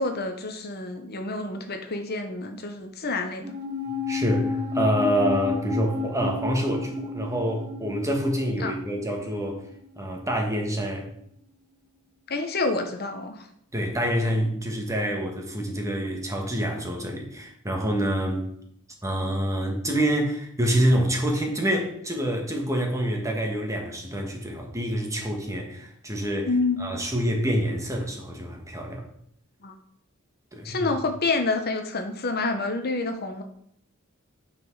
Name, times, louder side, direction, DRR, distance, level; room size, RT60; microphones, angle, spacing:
voice 1, 0.0-3.5 8.6-8.7 12.3-13.5 26.5-26.9 29.6-29.7 30.6-33.4, left 3 dB, 50° left, 5 dB, 0.9 m, -28 dB
sound 1, 3.4-10.0 10.2-10.3, left 5 dB, 40° right, 2.6 m, -32 dB
voice 2, 3.9-9.6 9.9-11.1 13.7-18.5 19.0-26.5 26.8-29.0 30.5-30.9, equal, 15° right, 1 dB, 1.7 m, -27 dB
9.2 x 6.0 x 4.8 m, 0.69 s
head